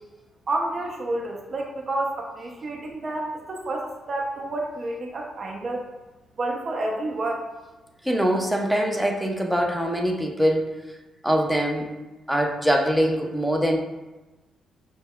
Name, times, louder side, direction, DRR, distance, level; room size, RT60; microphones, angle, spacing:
voice 1, 0.5-5.9 6.4-7.4, right 2 dB, 50° right, -1 dB, 0.6 m, -29 dB
voice 2, 8.0-10.7 11.2-11.9 12.3-13.8, equal, ahead, 1 dB, 0.6 m, -23 dB
5.4 x 2.1 x 2.2 m, 1.1 s
supercardioid pair, 60°, 0 cm